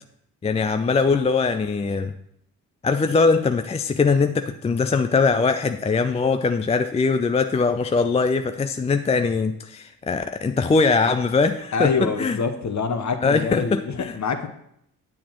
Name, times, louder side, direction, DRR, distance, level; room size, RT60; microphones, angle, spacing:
voice 1, 0.4-2.1 2.8-12.4 13.2-14.2, left 4 dB, 15° left, 8 dB, 0.3 m, -21 dB
voice 2, 11.7-14.5, left 5 dB, 40° left, 7 dB, 1.0 m, -25 dB
8.4 x 7.2 x 3.0 m, 0.74 s
hypercardioid pair, 45°, 44 cm